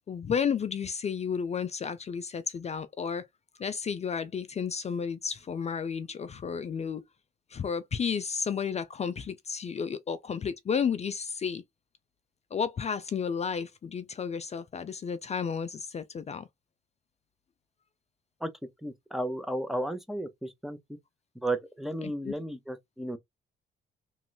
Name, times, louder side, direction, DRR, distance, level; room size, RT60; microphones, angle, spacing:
voice 1, 0.1-3.3 3.6-7.0 7.5-11.6 12.5-16.4 22.0-22.3, left 6 dB, 35° left, 0.4 m, -32 dB
voice 2, 18.8-20.8 21.4-23.2, right 1 dB, ahead, 0.6 m, -33 dB
3.1 x 2.9 x 2.2 m
cardioid pair, 90°, 20 cm